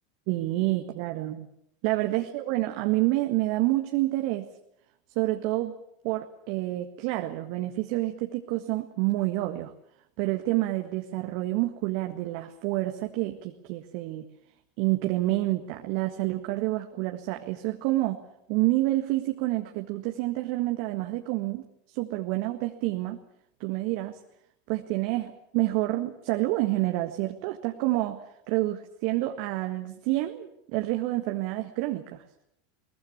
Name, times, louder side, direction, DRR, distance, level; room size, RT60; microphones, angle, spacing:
voice 1, 0.3-1.5 1.8-4.5 5.1-5.7 6.0-9.7 10.2-14.3 14.8-18.2 18.5-23.2 23.6-24.2 24.7-28.2 28.5-32.2, right 18 dB, 55° right, 5 dB, 1.7 m, -28 dB
22.0 x 20.5 x 8.5 m, 0.75 s
hypercardioid pair, 90°, 0 cm